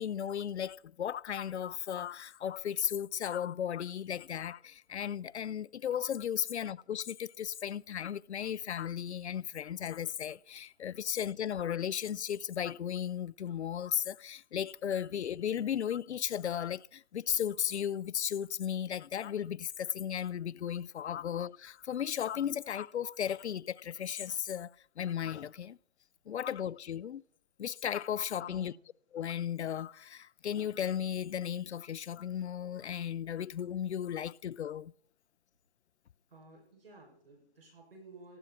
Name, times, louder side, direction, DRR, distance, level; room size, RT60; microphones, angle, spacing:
voice 1, 0.0-25.8 26.3-27.2 27.6-28.8 29.1-34.9, left 9 dB, 80° left, 0.5 m, -35 dB
voice 2, 28.4-28.8 36.3-38.4, right 3 dB, 60° right, 6.6 m, -54 dB
19.0 x 14.0 x 4.3 m
hypercardioid pair, 175°, 33 cm